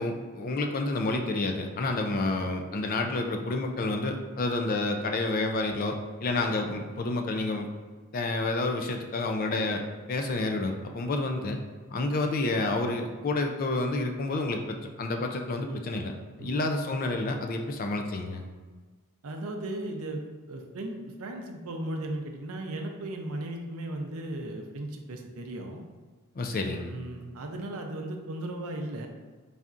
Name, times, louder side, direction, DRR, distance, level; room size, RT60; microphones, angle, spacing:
voice 1, 0.0-7.7 8.1-11.6 11.9-18.4 26.4-27.0, left 2 dB, 40° left, 4 dB, 0.4 m, -29 dB
voice 2, 19.2-20.2 20.5-25.8 26.6-29.1, right 1 dB, 75° right, 3 dB, 0.5 m, -36 dB
4.1 x 3.4 x 2.5 m, 1.4 s
head